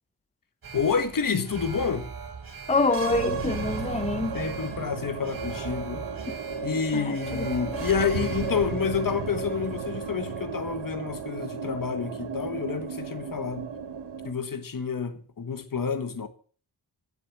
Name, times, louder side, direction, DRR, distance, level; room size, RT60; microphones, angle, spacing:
Alarm, 0.6-10.9 11.2-11.3, right 5 dB, 55° right, 3.2 m, -42 dB
voice 1, 0.7-2.1 4.3-6.1 6.6-13.7 14.2-16.3, left 6 dB, 50° left, 1.6 m, -29 dB
voice 2, 2.7-4.4 6.9-7.1 7.7-7.8, left 3 dB, 15° left, 0.7 m, -25 dB
sound 1, 2.8-14.3, right 5 dB, 75° right, 1.5 m, -34 dB
15.5 x 7.0 x 7.1 m
wide cardioid pair, 135°, 42 cm